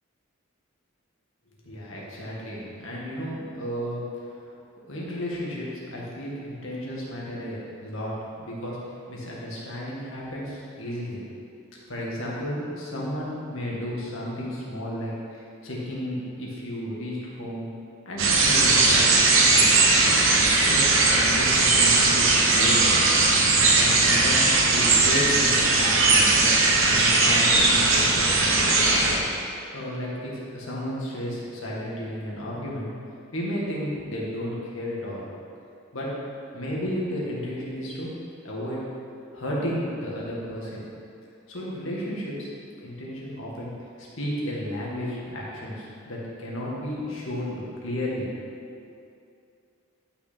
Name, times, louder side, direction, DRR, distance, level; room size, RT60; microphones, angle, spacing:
voice 1, 1.6-4.0 4.4-4.5 4.9-11.2 11.9-17.7 18.1-20.1 20.7-22.8 23.8-28.7 29.7-32.9 33.3-35.2 35.9-36.2 36.5-38.1 38.4-38.8 39.3-40.8 41.5-42.5 42.8-43.7 44.0-48.3 48.8-48.9, equal, 70° left, -5 dB, 2.1 m, -33 dB
sound 1, 18.2-29.2, right 3 dB, 70° right, 1.2 m, -19 dB
11.0 x 6.0 x 4.4 m, 2.5 s
head